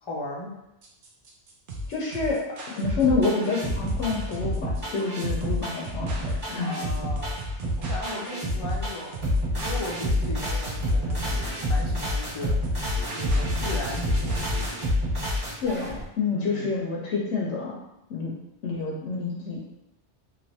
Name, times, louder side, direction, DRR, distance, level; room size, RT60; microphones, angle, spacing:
voice 1, 0.0-0.5 6.6-7.4 7.8-12.6 13.1-14.4 16.3-16.7, left 1 dB, 35° left, -3 dB, 0.5 m, -37 dB
sound 1, 0.8-14.8, equal, 60° right, 0.7 m, -36 dB
voice 2, 1.9-2.4 2.7-6.1 6.5-6.7 15.6-17.8 18.1-18.3 18.6-19.6, left 4 dB, 80° left, -3 dB, 0.9 m, -27 dB
sound 2, 2.8-16.0, left 1 dB, 20° right, 1.5 m, -28 dB
3.2 x 2.6 x 2.7 m, 0.90 s
omnidirectional pair, 1.2 m